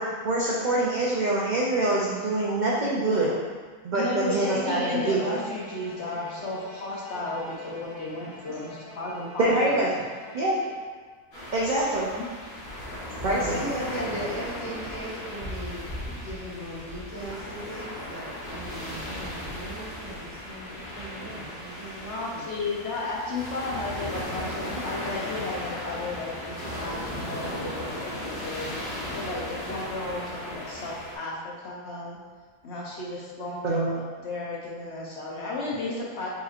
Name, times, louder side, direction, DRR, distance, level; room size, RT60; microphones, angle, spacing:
voice 1, 0.0-3.3 3.8-5.4 9.4-9.9 10.3-10.6 11.5-12.2 13.2-13.6 33.6-33.9, right 2 dB, 65° right, -6 dB, 0.4 m, -25 dB
voice 2, 2.9-3.4 13.3-22.5, right 1 dB, 15° right, -10 dB, 0.8 m, -38 dB
voice 3, 3.9-9.8 12.1-12.3 22.1-32.2 32.6-36.3, left 3 dB, 60° left, -4 dB, 0.9 m, -34 dB
Bowed string instrument, 4.2-11.2, equal, 35° left, 1.0 m, -46 dB
sound 1, 11.3-31.2, left 1 dB, 90° left, 1.8 m, -36 dB
5.5 x 2.9 x 2.4 m, 1.5 s
omnidirectional pair, 1.5 m